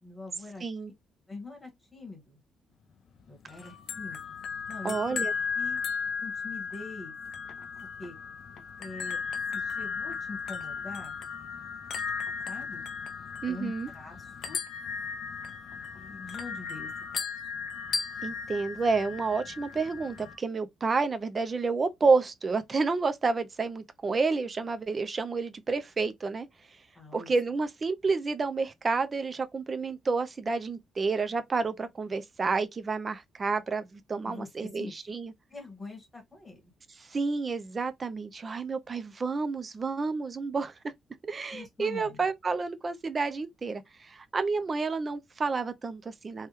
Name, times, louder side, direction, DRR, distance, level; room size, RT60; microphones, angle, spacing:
voice 1, 0.0-0.6 1.3-2.4 3.3-4.2 4.7-5.2 5.5-5.8 6.2-7.2 8.0-8.2 8.8-9.2 9.5-11.2 12.5-12.9 13.4-14.6 15.9-16.9 26.9-27.3 34.2-35.1 35.5-36.7 41.5-42.2, left 3 dB, 10° left, 1.2 m, -43 dB
voice 2, 0.6-0.9 4.8-5.3 13.4-13.9 18.2-26.5 27.1-35.3 37.0-40.7 41.2-46.5, right 4 dB, 25° right, 0.4 m, -30 dB
sound 1, 3.5-20.4, left 6 dB, 55° left, 0.5 m, -36 dB
3.4 x 2.2 x 2.9 m
cardioid pair, 175°, 0 cm